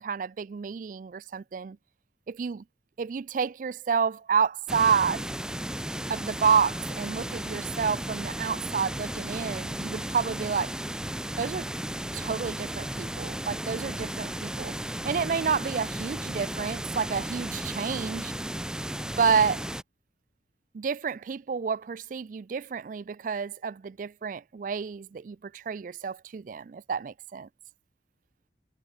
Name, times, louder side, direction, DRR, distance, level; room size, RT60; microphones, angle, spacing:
voice 1, 0.0-1.8 2.3-2.6 3.0-5.3 6.1-10.7 11.4-11.7 12.1-14.8 15.0-18.3 19.2-19.6 20.7-27.5, right 6 dB, 45° right, 0.3 m, -29 dB
sound 1, 4.7-19.8, right 1 dB, 5° right, 0.8 m, -34 dB
head